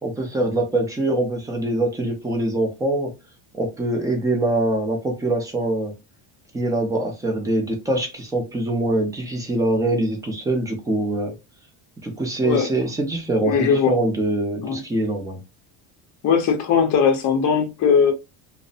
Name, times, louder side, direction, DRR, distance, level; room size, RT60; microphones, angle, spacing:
voice 1, 0.0-3.1 3.5-5.9 6.5-11.3 12.0-15.4, right 2 dB, 10° right, 0.4 m, -23 dB
voice 2, 13.4-14.0 14.6-14.8 16.2-18.1, left 6 dB, 40° left, 0.6 m, -19 dB
2.5 x 2.0 x 2.4 m
cardioid pair, 155°, 47 cm